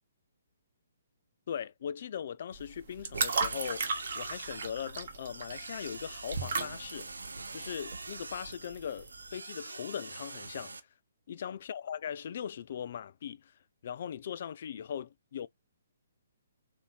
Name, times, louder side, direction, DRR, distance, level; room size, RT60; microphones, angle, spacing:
voice 1, 1.5-3.8 4.1-7.1 7.5-10.8 11.3-13.5 13.8-15.5, left 8 dB, 45° left, 0.3 m, -39 dB
sound 1, 2.5-9.3, right 5 dB, 45° right, 1.1 m, -36 dB
sound 2, 3.1-10.8, right 3 dB, 70° right, 0.6 m, -45 dB
4.0 x 2.8 x 3.9 m
figure-of-eight pair, 130°, 0 cm